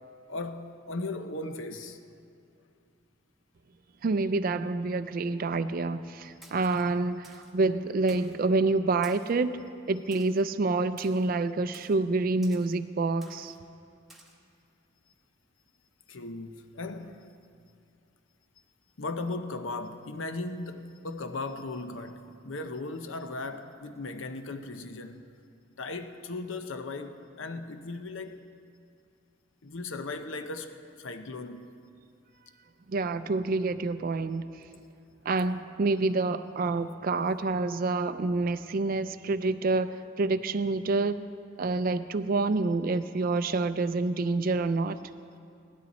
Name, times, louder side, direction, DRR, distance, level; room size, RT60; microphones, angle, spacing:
voice 1, 0.1-2.0 6.4-6.5 16.1-17.3 19.0-25.3 25.8-28.4 29.6-31.8, left 2 dB, 75° left, 0.8 m, -37 dB
voice 2, 4.0-9.6 9.9-13.5 32.9-34.4 35.3-41.2 41.6-45.0, right 3 dB, 45° right, 0.4 m, -27 dB
Splash splatter, 6.4-6.8 7.2-7.6 8.1-8.4 9.0-9.4 10.1-10.4 11.0-11.3 11.7-12.0 12.4-12.8 13.2-13.6 14.1-14.3, right 1 dB, ahead, 1.4 m, -53 dB
17.5 x 12.5 x 4.2 m
head